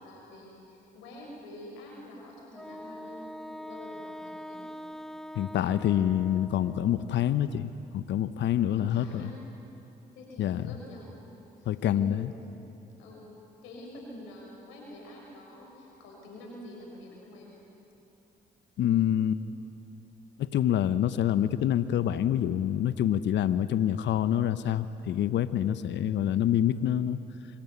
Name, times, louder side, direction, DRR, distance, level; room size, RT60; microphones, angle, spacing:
voice 1, 0.0-4.6 8.6-9.4 10.1-11.1 11.6-12.7 13.0-13.3 13.6-17.5, left 1 dB, 85° left, -1 dB, 6.3 m, -47 dB
Wind instrument woodwind instrument, 2.5-7.2, left 1 dB, ahead, 0.6 m, -43 dB
voice 2, 5.3-9.3 10.4-10.7 11.7-12.3 18.8-19.5 20.4-27.2, left 10 dB, 70° left, 13 dB, 0.8 m, -26 dB
25.5 x 22.0 x 9.7 m, 2.8 s
hypercardioid pair, 45°, 19 cm